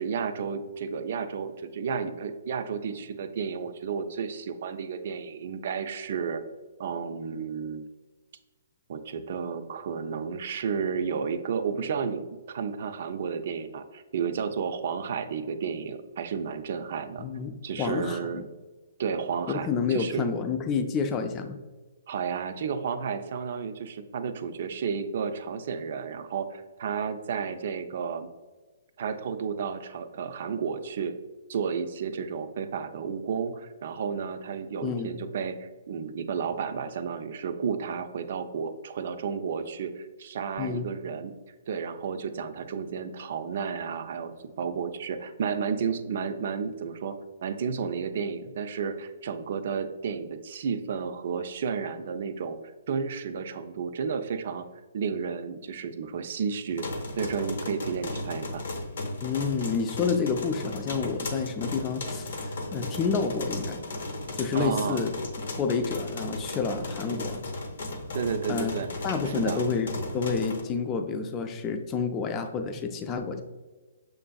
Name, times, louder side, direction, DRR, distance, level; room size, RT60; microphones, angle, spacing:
voice 1, 0.0-6.4 6.8-7.9 8.9-17.2 17.6-18.4 19.0-20.3 22.1-28.3 29.0-31.1 31.5-41.4 41.7-47.2 47.4-52.6 52.9-54.7 54.9-56.8 57.2-58.7 64.5-65.0 68.1-68.9 69.2-69.6, right 6 dB, 55° right, 9 dB, 0.4 m, -32 dB
voice 2, 17.2-18.4 19.5-21.6 34.8-35.1 40.6-40.8 59.2-63.8 64.4-65.1 65.6-67.4 68.5-68.7 69.0-73.4, left 5 dB, 20° left, 7 dB, 0.4 m, -29 dB
sound 1, 56.7-70.6, left 2 dB, 70° left, 0.8 m, -35 dB
6.7 x 2.5 x 2.2 m, 1.3 s
hypercardioid pair, 155°, 0 cm